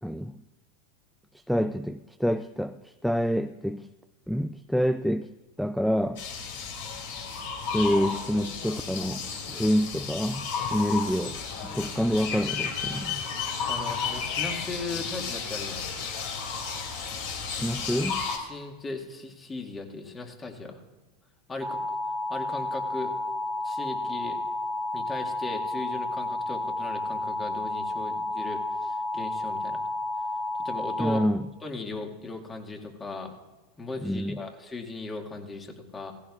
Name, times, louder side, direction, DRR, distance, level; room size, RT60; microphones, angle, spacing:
voice 1, 0.0-0.4 1.5-3.9 4.3-5.3 5.6-6.2 7.7-13.2 17.5-18.2 31.0-31.5 34.0-34.4, equal, ahead, 12 dB, 0.3 m, -27 dB
sound 1, 6.2-18.4, left 6 dB, 65° left, 2.7 m, -33 dB
voice 2, 13.7-15.8 18.4-20.8 21.5-21.8 22.3-23.1 23.6-24.4 24.9-29.8 30.6-31.2 31.6-33.3 33.8-36.1, left 3 dB, 20° left, 3 dB, 1.9 m, -37 dB
sound 2, 21.6-31.2, left 2 dB, 15° right, 1.7 m, -31 dB
17.5 x 15.5 x 2.4 m, 1.1 s
hypercardioid pair, 90°, 0 cm